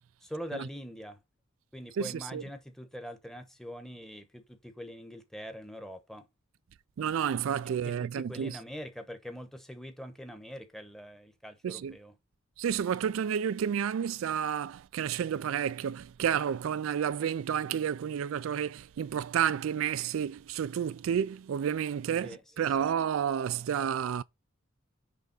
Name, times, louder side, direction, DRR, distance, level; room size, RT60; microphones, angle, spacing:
voice 1, 0.2-1.2 1.7-6.3 7.8-12.1 22.2-22.4 22.8-22.9, equal, ahead, 1.0 m, -43 dB
voice 2, 2.0-2.4 7.0-8.6 11.6-12.0 12.6-24.2, right 8 dB, 80° right, 0.3 m, -31 dB
10.0 x 3.5 x 4.0 m
head